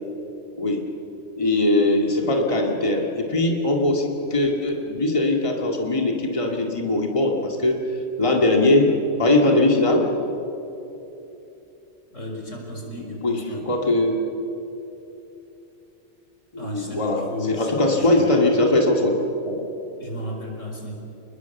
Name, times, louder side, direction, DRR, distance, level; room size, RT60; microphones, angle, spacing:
voice 1, 1.3-7.9 8.2-10.1 13.0-14.2 16.5-19.1 19.5-19.6, left 2 dB, 25° left, 1 dB, 2.2 m, -21 dB
voice 2, 12.1-13.6 16.6-18.5 20.0-21.0, left 1 dB, 85° left, 0 dB, 5.0 m, -34 dB
28.5 x 21.0 x 7.2 m, 2.9 s
omnidirectional pair, 1.3 m